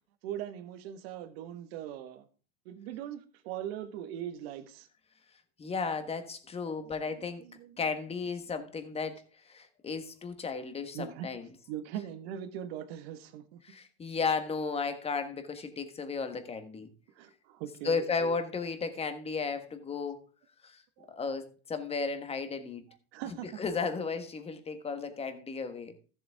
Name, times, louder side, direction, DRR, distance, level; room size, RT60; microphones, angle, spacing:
voice 1, 0.2-2.3 2.6-4.9 6.7-7.8 10.9-11.3 11.7-13.6 17.1-18.3 21.0-21.1 23.1-23.6, right 10 dB, 70° right, 1.5 m, -41 dB
voice 2, 5.6-7.4 7.8-9.2 9.5-11.5 13.6-16.9 17.8-20.2 20.6-20.7 21.1-22.8 23.6-25.9, left 4 dB, 20° left, 1.4 m, -34 dB
13.5 x 7.5 x 3.6 m
supercardioid pair, 130°, 32 cm